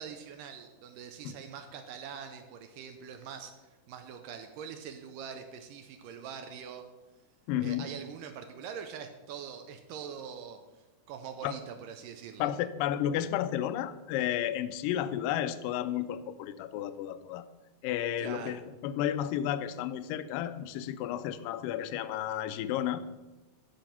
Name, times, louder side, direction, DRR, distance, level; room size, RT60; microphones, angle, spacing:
voice 1, 0.0-6.8 7.6-10.6 11.1-12.5 18.2-18.6, right 7 dB, 75° right, 6 dB, 2.1 m, -43 dB
voice 2, 7.5-7.9 11.4-11.5 12.4-17.5 17.8-23.0, left 11 dB, 80° left, 13 dB, 2.0 m, -32 dB
12.0 x 5.1 x 5.9 m, 1.1 s
omnidirectional pair, 4.3 m